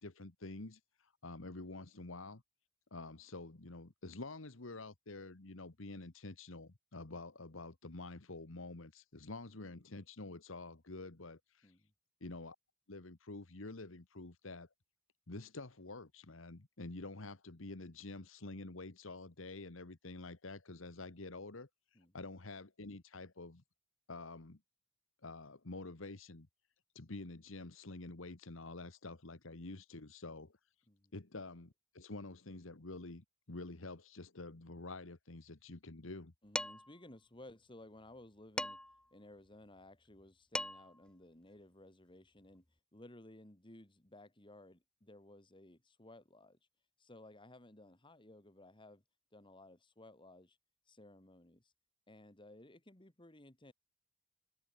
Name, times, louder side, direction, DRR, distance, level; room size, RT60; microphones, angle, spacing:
voice 1, 0.0-2.4 2.9-11.7 12.2-12.6 12.9-14.7 15.3-21.7 22.1-23.6 24.1-24.6 25.2-26.5 26.9-30.6 31.1-36.3, left 2 dB, 65° left, 1.5 m, -48 dB
voice 2, 36.4-38.8 39.1-42.7 42.9-46.6 47.0-49.0 49.3-50.6 50.9-51.7 52.1-53.7, left 1 dB, 25° left, 2.5 m, -57 dB
Dishes pots and pans, 36.6-37.0 38.6-39.0 40.2-40.3 40.5-41.0, left 1 dB, 5° left, 0.4 m, -40 dB
head